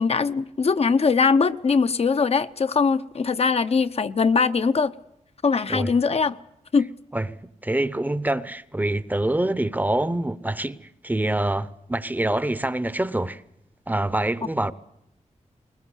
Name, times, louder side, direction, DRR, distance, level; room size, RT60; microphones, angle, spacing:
voice 1, 0.0-4.9 5.4-6.4 6.7-6.9, left 5 dB, 55° left, 0.8 m, -21 dB
voice 2, 7.1-10.8 11.0-13.4 13.9-14.7, right 1 dB, 15° right, 0.8 m, -25 dB
21.0 x 20.5 x 8.2 m
wide cardioid pair, 125°, 13 cm